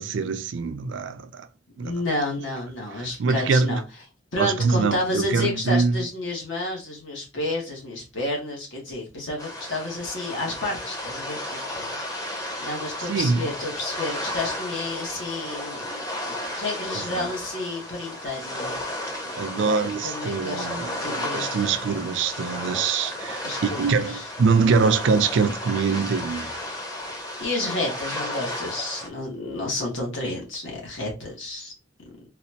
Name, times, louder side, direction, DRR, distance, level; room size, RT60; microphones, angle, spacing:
voice 1, 0.0-1.5 1.8-1.9 3.2-3.8 4.4-6.0 13.1-13.4 17.1-17.3 19.3-26.6, right 4 dB, 75° right, 0.4 m, -24 dB
voice 2, 1.8-3.8 4.3-20.7 21.0-21.8 23.4-24.3 27.4-31.7, left 1 dB, 80° left, 1.5 m, -31 dB
sound 1, 9.4-29.1, left 1 dB, 20° left, 0.6 m, -33 dB
4.0 x 2.4 x 2.7 m
head